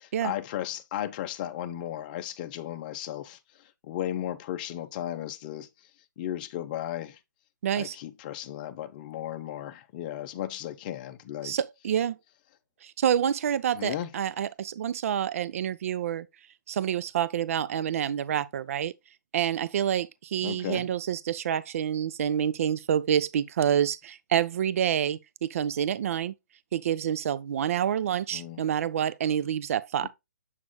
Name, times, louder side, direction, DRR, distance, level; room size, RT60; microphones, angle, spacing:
voice 1, 0.2-3.4 3.8-5.7 6.2-7.2 7.8-11.6 13.7-14.1 20.4-20.9 28.3-28.6 30.0-30.1, left 12 dB, 30° left, 0.8 m, -35 dB
voice 2, 7.6-8.0 11.4-12.2 12.8-16.3 16.7-18.9 19.3-26.3 26.7-30.1, right 9 dB, 45° right, 0.5 m, -28 dB
7.3 x 6.2 x 2.3 m
hypercardioid pair, 155°, 10 cm